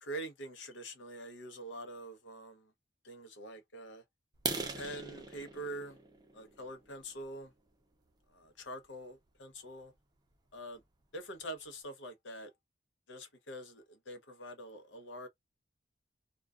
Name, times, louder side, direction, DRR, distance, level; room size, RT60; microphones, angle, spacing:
voice 1, 0.0-2.7 3.0-4.0 4.7-6.0 6.3-7.5 8.3-9.9 10.5-10.8 11.1-12.5 13.1-15.3, right 1 dB, 80° left, 0.7 m, -45 dB
sound 1, 4.3-8.1 8.6-8.8 9.3-9.4 9.8-10.0 10.3-10.4 10.8-10.9 11.2-11.7, right 3 dB, 20° right, 0.5 m, -41 dB
2.3 x 2.3 x 2.3 m
head